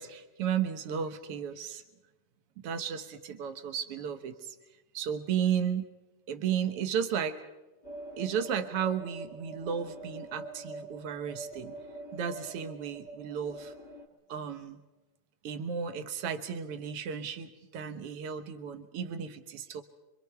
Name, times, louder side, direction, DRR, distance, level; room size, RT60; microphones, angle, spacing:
voice 1, 0.0-1.8 2.6-4.5 4.9-5.9 6.3-7.4 8.2-11.7 12.1-13.7 14.3-14.8 15.4-19.8, right 8 dB, 70° right, 9 dB, 1.4 m, -34 dB
sound 1, 7.8-14.1, right 2 dB, 25° left, 1.7 m, -45 dB
25.5 x 25.0 x 4.7 m, 1.1 s
omnidirectional pair, 3.9 m